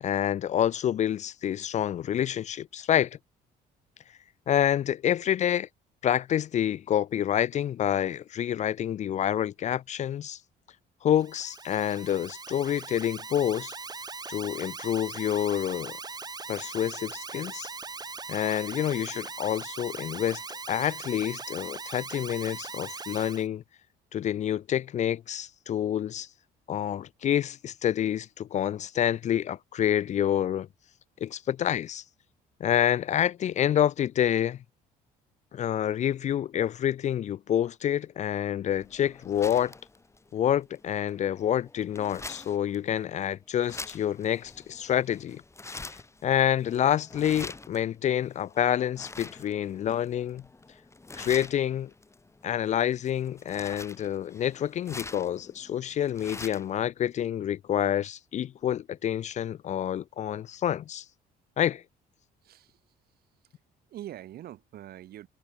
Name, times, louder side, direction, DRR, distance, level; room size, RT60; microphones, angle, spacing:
voice 1, 0.0-3.2 4.5-5.7 6.0-10.4 11.0-13.7 14.3-16.0 16.5-17.7 18.3-20.4 20.7-23.6 24.1-26.3 26.7-30.7 31.2-32.0 32.6-34.6 35.5-39.7 40.3-45.4 45.7-50.4 51.2-51.9 52.4-61.0 61.6-61.8, left 10 dB, 45° left, 0.5 m, -28 dB
Alarm, 11.1-23.5, right 4 dB, 25° right, 2.6 m, -40 dB
sound 1, 38.7-56.8, left 3 dB, 15° left, 5.4 m, -46 dB
voice 2, 62.4-62.9 63.5-63.6 63.9-65.3, right 12 dB, 65° right, 5.9 m, -44 dB
cardioid pair, 110°, 17 cm